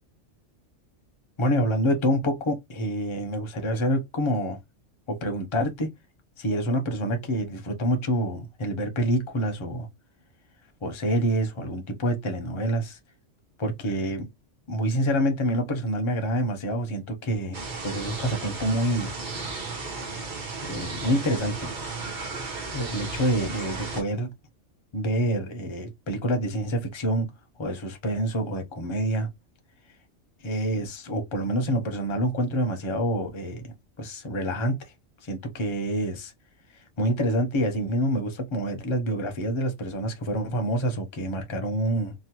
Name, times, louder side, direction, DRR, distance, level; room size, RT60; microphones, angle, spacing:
voice 1, 1.4-4.6 5.1-5.9 6.4-9.9 10.8-13.0 13.6-14.3 14.7-17.6 17.8-19.1 20.6-21.7 22.7-24.3 24.9-27.3 27.6-29.3 30.4-34.9 35.2-36.3 37.0-42.1, equal, 35° left, 0.5 m, -27 dB
sound 1, 17.5-24.0, right 3 dB, 45° right, 0.8 m, -34 dB
3.0 x 2.1 x 2.8 m
omnidirectional pair, 1.3 m